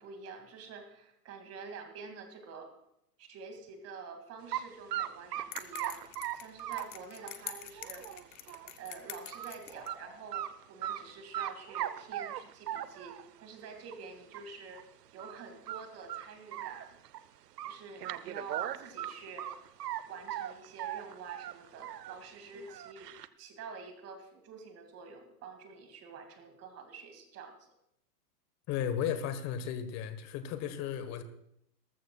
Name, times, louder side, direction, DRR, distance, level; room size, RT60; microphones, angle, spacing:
voice 1, 0.0-2.7 3.2-6.0 6.3-8.1 8.8-14.8 15.1-17.0 17.6-19.5 20.0-27.7, right 5 dB, 30° right, 5 dB, 2.2 m, -48 dB
sound 1, 4.5-4.6 4.9-8.7 9.1-9.5 9.9-10.0 10.3-11.0 11.3-13.3 13.9-14.0 14.3-14.4 14.7-14.8 15.2-15.4 15.7-17.2 17.6-20.0 20.3-22.2 22.5-23.3, right 12 dB, 75° right, 0.8 m, -38 dB
sound 2, 5.5-9.9, left 13 dB, 20° left, 0.3 m, -46 dB
sound 3, 9.7-10.2, right 2 dB, 10° right, 3.1 m, -51 dB
voice 2, 28.7-31.2, left 9 dB, 35° left, 11 dB, 1.3 m, -34 dB
19.0 x 14.0 x 2.3 m, 0.78 s
hypercardioid pair, 120°, 48 cm